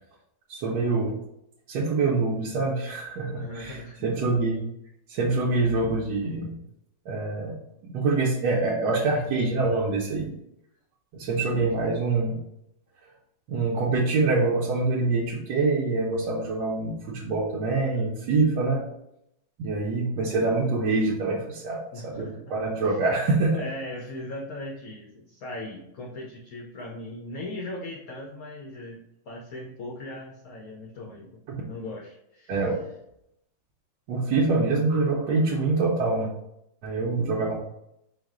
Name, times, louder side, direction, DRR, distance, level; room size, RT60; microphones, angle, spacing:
voice 1, 0.5-1.2 1.7-4.6 5.1-6.5 7.1-10.3 11.1-12.4 13.5-18.9 19.6-23.6 31.5-31.6 32.5-32.8 34.1-36.3 36.8-37.6, right 3 dB, 70° right, -3 dB, 1.1 m, -25 dB
voice 2, 3.4-4.2 11.5-11.7 21.9-22.4 23.5-31.3 31.6-32.6, left 1 dB, 80° left, 0 dB, 0.8 m, -39 dB
4.6 x 2.1 x 3.6 m, 0.80 s
omnidirectional pair, 2.1 m